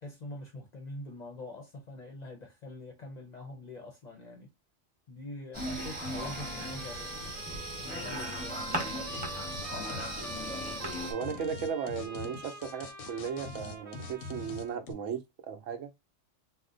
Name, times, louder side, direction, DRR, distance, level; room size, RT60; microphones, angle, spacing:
voice 1, 0.0-4.5 5.1-9.0, left 2 dB, 45° left, 0.6 m, -45 dB
sound 1, 5.5-11.1, equal, 10° right, 0.9 m, -37 dB
Trumpet, 5.6-14.8, right 3 dB, 40° right, 0.5 m, -45 dB
sound 2, 9.1-9.3 9.5-14.9, left 4 dB, 90° left, 0.9 m, -44 dB
voice 2, 11.1-15.9, right 7 dB, 80° right, 1.0 m, -36 dB
2.6 x 2.2 x 3.7 m
omnidirectional pair, 1.3 m